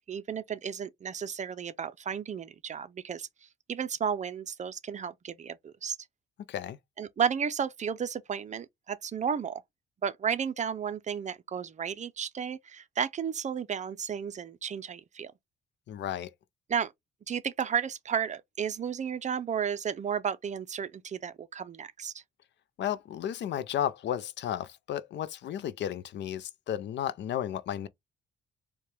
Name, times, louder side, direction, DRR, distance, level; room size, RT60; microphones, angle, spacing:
voice 1, 0.1-3.3 3.7-6.0 7.0-9.6 10.0-15.3 16.7-16.9 17.3-22.2, right 7 dB, 35° right, 0.5 m, -33 dB
voice 2, 15.9-16.3 22.8-27.9, left 10 dB, 65° left, 0.5 m, -33 dB
4.6 x 2.3 x 3.2 m
cardioid pair, 90°, 20 cm